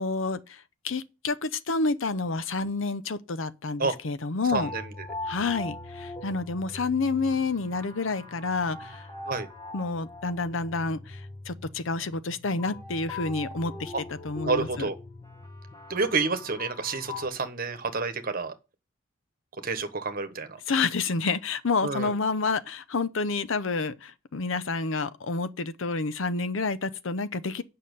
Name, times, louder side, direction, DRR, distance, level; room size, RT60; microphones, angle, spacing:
voice 1, 0.0-4.7 5.3-9.0 9.7-11.2 11.5-13.9 14.2-14.9 20.7-27.6, left 3 dB, 70° left, 0.7 m, -29 dB
sound 1, 4.5-17.3, left 2 dB, 15° left, 1.3 m, -41 dB
voice 2, 4.5-4.9 9.3-9.5 13.9-14.0 14.4-15.0 15.9-18.5 19.6-20.6 21.8-22.1, right 4 dB, 45° right, 1.2 m, -29 dB
8.6 x 5.7 x 6.8 m
head